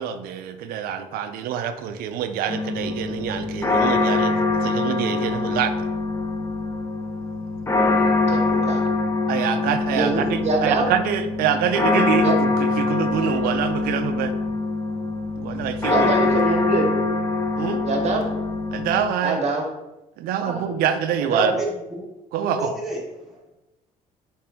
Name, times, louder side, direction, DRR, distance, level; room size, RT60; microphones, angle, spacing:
voice 1, 0.0-4.3 4.6-5.7 9.3-12.5 12.8-14.3 15.4-16.4 17.5-17.8 18.7-19.4 20.2-21.6 22.3-22.7, right 8 dB, 75° right, 8 dB, 0.4 m, -25 dB
sound 1, 2.5-19.1, left 3 dB, 20° left, 0.7 m, -23 dB
voice 2, 7.9-8.8 9.9-10.9 12.2-12.3 15.9-16.9 17.9-18.3 19.2-19.6 20.4-20.7 21.2-21.5, right 2 dB, 45° right, 3 dB, 0.8 m, -24 dB
voice 3, 21.5-22.1 22.4-23.4, right 1 dB, ahead, -4 dB, 1.3 m, -32 dB
3.7 x 2.6 x 3.4 m, 0.98 s
cardioid pair, 95°, 15 cm